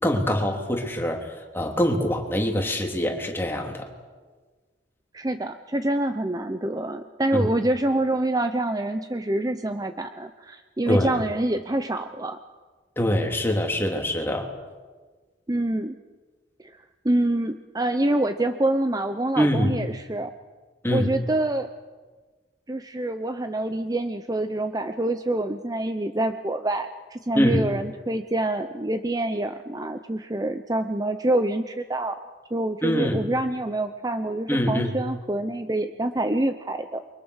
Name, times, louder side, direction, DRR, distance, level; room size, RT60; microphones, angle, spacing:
voice 1, 0.0-1.2 1.5-3.8 7.3-7.5 10.9-11.2 13.0-14.5 19.4-19.7 20.8-21.1 27.3-27.7 32.8-33.2 34.5-34.9, equal, 15° left, 1 dB, 3.2 m, -24 dB
voice 2, 5.1-12.4 15.5-15.9 16.6-20.3 20.9-21.7 22.7-32.2 32.5-37.0, right 1 dB, 20° right, 8 dB, 0.8 m, -26 dB
29.0 x 24.0 x 6.5 m, 1.4 s
head